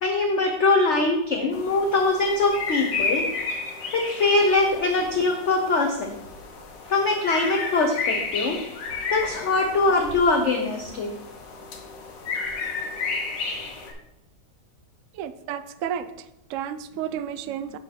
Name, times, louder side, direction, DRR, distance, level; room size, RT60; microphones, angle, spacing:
voice 1, 0.0-3.2 3.9-6.1 6.9-8.6 9.1-11.1, left 3 dB, 55° left, 3 dB, 0.8 m, -22 dB
sound 1, 1.5-13.9, left 4 dB, 80° left, 1.7 m, -32 dB
voice 2, 15.1-17.8, right 9 dB, 85° right, 12 dB, 0.7 m, -32 dB
7.3 x 4.6 x 5.8 m, 0.88 s
omnidirectional pair, 1.9 m